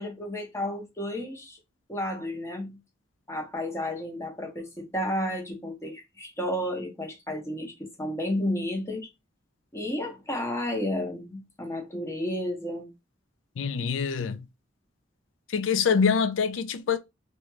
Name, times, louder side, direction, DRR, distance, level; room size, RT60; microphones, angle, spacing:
voice 1, 0.0-1.6 1.9-2.8 3.3-9.1 9.7-12.9, left 1 dB, 15° left, 0.7 m, -32 dB
voice 2, 13.6-14.5 15.5-17.0, left 6 dB, 75° left, 0.4 m, -25 dB
2.5 x 2.2 x 3.0 m
head